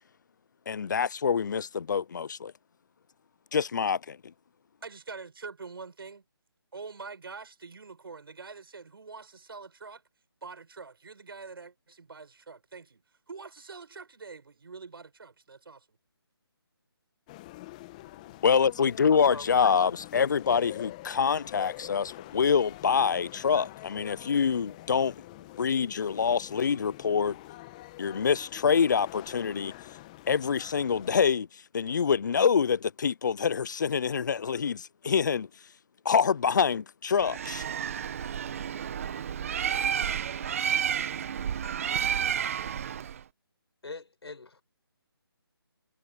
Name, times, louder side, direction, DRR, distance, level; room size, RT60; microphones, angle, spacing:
voice 1, 0.7-2.5 3.5-4.3 18.4-25.2 25.6-27.4 28.0-29.7 30.3-35.5 36.0-37.6, left 6 dB, 50° left, 0.4 m, -26 dB
voice 2, 4.8-6.2 6.7-10.0 10.4-13.0 13.3-15.9, right 4 dB, 65° right, 5.9 m, -45 dB
sound 1, 17.3-31.2, left 18 dB, 15° left, 1.1 m, -46 dB
voice 3, 19.3-19.7 43.8-44.6, left 3 dB, 85° left, 5.4 m, -42 dB
Bird, 37.2-43.2, right 8 dB, 35° right, 1.4 m, -31 dB
hypercardioid pair, 165°, 13 cm